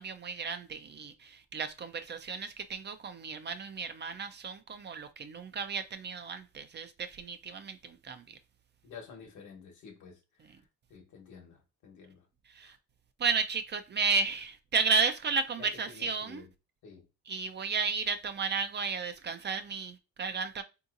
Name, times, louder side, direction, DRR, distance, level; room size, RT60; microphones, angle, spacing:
voice 1, 0.0-8.4 10.4-10.5 12.5-12.8 13.2-16.5 17.3-20.6, right 5 dB, 35° right, 0.4 m, -33 dB
voice 2, 8.8-10.5 10.9-12.2 12.6-12.8 15.6-16.5 16.8-17.1, left 6 dB, 75° left, 1.2 m, -51 dB
3.7 x 2.8 x 2.5 m
cardioid pair, 90°, 30 cm